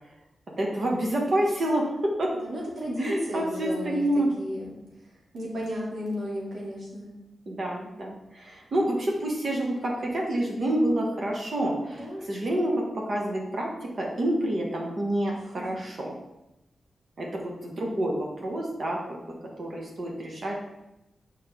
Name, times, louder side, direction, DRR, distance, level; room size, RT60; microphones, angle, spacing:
voice 1, 0.6-2.3 3.0-4.3 7.5-16.1 17.2-20.6, right 1 dB, 55° right, -2 dB, 1.3 m, -28 dB
voice 2, 2.3-4.0 4.4-4.7 5.3-7.1 11.9-12.3, equal, 90° right, -5 dB, 2.6 m, -33 dB
7.3 x 5.3 x 3.5 m, 0.91 s
wide cardioid pair, 125°, 0 cm